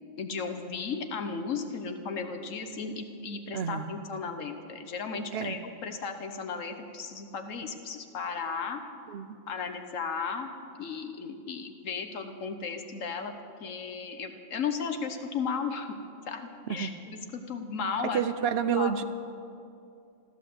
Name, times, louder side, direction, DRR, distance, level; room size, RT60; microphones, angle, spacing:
voice 1, 0.2-8.8 9.5-10.5 10.8-13.3 13.6-15.9 16.3-18.2 18.8-18.9, left 5 dB, 70° left, 6 dB, 1.3 m, -35 dB
voice 2, 3.5-3.9 5.3-5.6 9.1-9.4 16.7-16.9 18.1-19.0, right 7 dB, 55° right, 12 dB, 0.9 m, -29 dB
14.0 x 13.5 x 7.6 m, 2.6 s
omnidirectional pair, 1.4 m